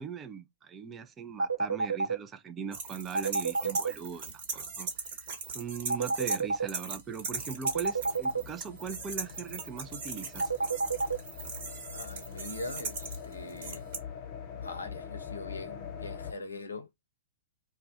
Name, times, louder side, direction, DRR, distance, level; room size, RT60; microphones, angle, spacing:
voice 1, 0.0-10.5, right 6 dB, 20° right, 0.4 m, -40 dB
sound 1, 1.4-2.2 3.1-3.9 5.9-6.7 7.6-8.4 10.4-11.2, right 4 dB, 85° right, 0.4 m, -28 dB
sound 2, 2.7-6.4 6.7-14.0, right 4 dB, 50° right, 1.1 m, -39 dB
sound 3, 7.1-16.3, left 7 dB, 40° left, 0.6 m, -44 dB
voice 2, 11.9-13.9 14.5-16.9, left 2 dB, 80° left, 0.6 m, -42 dB
2.3 x 2.2 x 2.4 m
figure-of-eight pair, 115°, 0 cm